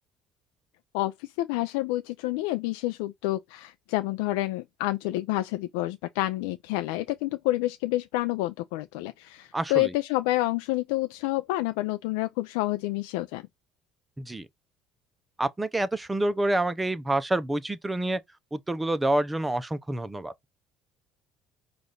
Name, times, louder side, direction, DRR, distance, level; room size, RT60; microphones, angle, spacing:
voice 1, 0.9-13.4, left 17 dB, 85° left, 0.3 m, -28 dB
voice 2, 9.5-9.9 14.2-14.5 15.4-18.2 18.5-20.3, right 1 dB, 15° right, 0.6 m, -27 dB
5.0 x 2.4 x 3.9 m
supercardioid pair, 90°, 0 cm